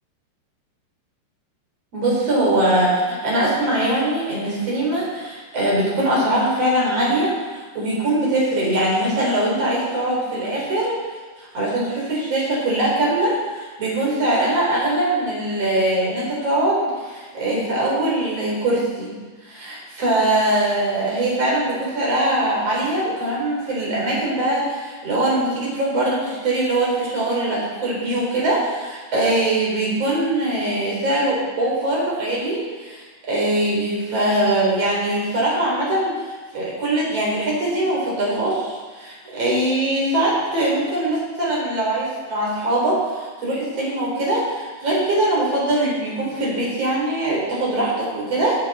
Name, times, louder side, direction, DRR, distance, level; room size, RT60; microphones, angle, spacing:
voice 1, 1.9-10.9 11.4-19.1 19.4-36.1 36.5-48.5, right 1 dB, 35° right, -4 dB, 4.5 m, -22 dB
17.0 x 10.5 x 4.2 m, 1.4 s
omnidirectional pair, 5.3 m